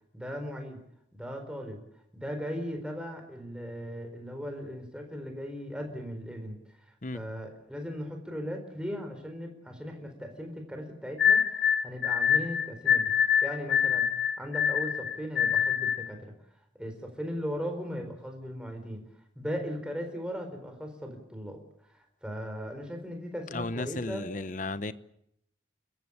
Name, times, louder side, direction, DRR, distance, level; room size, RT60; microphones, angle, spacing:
voice 1, 0.1-0.8 1.1-1.8 2.1-6.6 6.9-13.1 13.4-14.1 14.4-16.3 16.8-19.0 19.3-21.6 21.9-24.2, equal, 5° right, 4.3 m, -38 dB
sound 1, 11.2-16.1, left 8 dB, 80° left, 2.0 m, -25 dB
voice 2, 23.5-24.9, left 2 dB, 40° left, 0.9 m, -34 dB
30.0 x 15.0 x 8.5 m
head